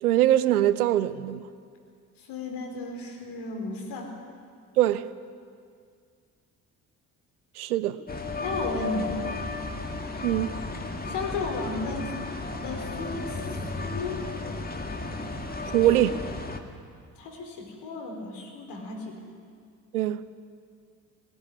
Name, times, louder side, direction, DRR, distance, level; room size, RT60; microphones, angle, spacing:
voice 1, 0.0-1.5 4.8-5.1 7.6-8.0 10.2-10.6 15.6-16.2 19.9-20.3, right 13 dB, 80° right, 0.8 m, -23 dB
voice 2, 2.2-4.1 8.4-9.4 11.0-12.3 12.6-13.4 13.8-14.2 16.0-16.1 17.2-19.2, left 3 dB, 65° left, 4.5 m, -34 dB
sound 1, 8.1-16.6, left 3 dB, 20° left, 2.2 m, -34 dB
19.0 x 18.5 x 9.9 m
figure-of-eight pair, 45°, 44 cm